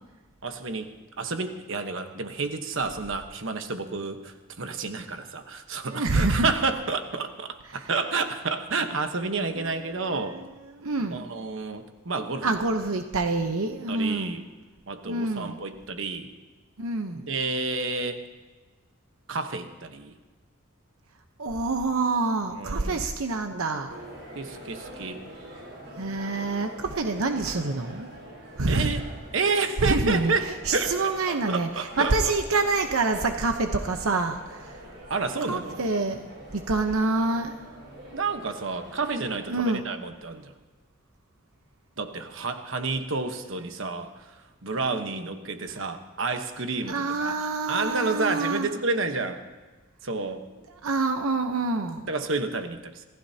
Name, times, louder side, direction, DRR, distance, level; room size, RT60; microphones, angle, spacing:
voice 1, 0.4-10.4 11.1-12.5 13.9-14.4 14.9-16.3 17.1-18.2 19.3-20.1 22.6-23.0 24.3-25.2 28.7-29.0 29.3-32.3 35.1-35.8 38.1-40.5 42.0-49.4 50.0-50.4 52.1-53.0, right 3 dB, 70° right, 7 dB, 1.2 m, -30 dB
voice 2, 5.9-6.5 7.7-7.9 9.5-9.7 10.3-10.5 10.7-11.4 12.4-14.4 15.1-15.6 16.8-17.3 21.4-24.0 26.0-28.1 28.6-29.0 29.8-30.3 30.6-34.8 35.5-36.2 36.5-37.6 39.5-39.9 45.8-45.9 46.9-48.7 50.8-52.0, right 3 dB, 90° right, 5 dB, 0.9 m, -27 dB
sound 1, 23.9-39.5, right 1 dB, 55° right, 5.6 m, -45 dB
27.0 x 15.0 x 2.9 m, 1.3 s
head